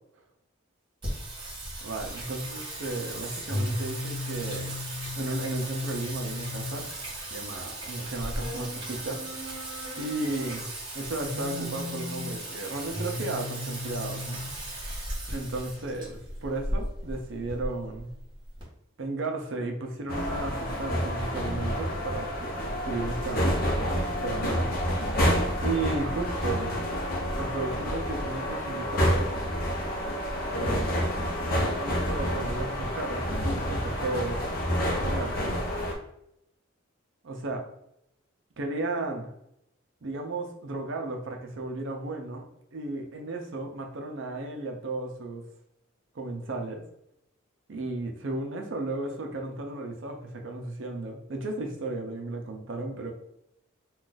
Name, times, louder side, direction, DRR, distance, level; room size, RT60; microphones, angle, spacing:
Singing, 1.0-18.6, equal, 20° right, 1.1 m, -35 dB
voice 1, 1.8-4.7 5.1-6.9 7.3-9.2 10.0-10.7 10.9-14.4 15.3-18.1 19.0-24.7 25.6-26.7 27.4-29.3 30.5-31.1 31.8-34.4 35.0-35.6 37.2-37.6 38.6-39.3 40.0-42.4 42.7-45.4 46.1-46.8 47.7-53.1, right 2 dB, 60° right, 3 dB, 0.5 m, -34 dB
sound 1, 20.1-35.9, equal, 45° left, 0.6 m, -28 dB
2.5 x 2.3 x 3.8 m, 0.79 s
head